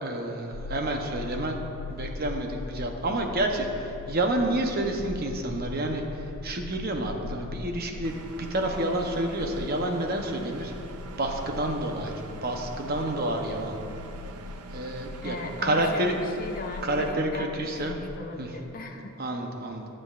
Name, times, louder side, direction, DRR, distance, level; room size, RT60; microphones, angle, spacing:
voice 1, 0.0-1.6 1.9-10.7 11.2-12.1 12.4-13.7 14.7-15.4 15.6-16.1 16.8-18.0 18.4-18.5 19.2-19.9, right 1 dB, 45° right, 3 dB, 0.8 m, -29 dB
sound 1, 0.5-18.2, left 3 dB, 90° left, 0.4 m, -41 dB
Engine, 8.0-17.1, right 3 dB, 85° right, 0.5 m, -45 dB
voice 2, 15.2-19.2, left 2 dB, 40° left, 3 dB, 0.7 m, -38 dB
17.0 x 7.6 x 2.4 m, 2.8 s
head